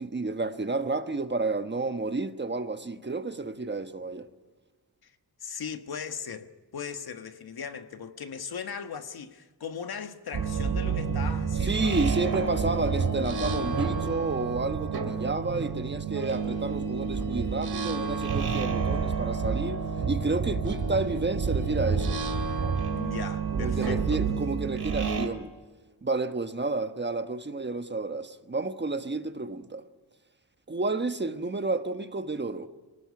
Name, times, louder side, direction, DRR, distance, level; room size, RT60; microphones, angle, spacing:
voice 1, 0.0-4.3 11.6-22.2 23.5-25.5 26.0-29.8 30.7-32.7, right 3 dB, 30° right, 1.2 m, -31 dB
voice 2, 5.4-12.0 22.9-24.3, left 7 dB, 70° left, 1.5 m, -38 dB
sound 1, 10.3-25.3, right 5 dB, 75° right, 2.8 m, -29 dB
23.5 x 19.0 x 9.7 m
wide cardioid pair, 90°, 38 cm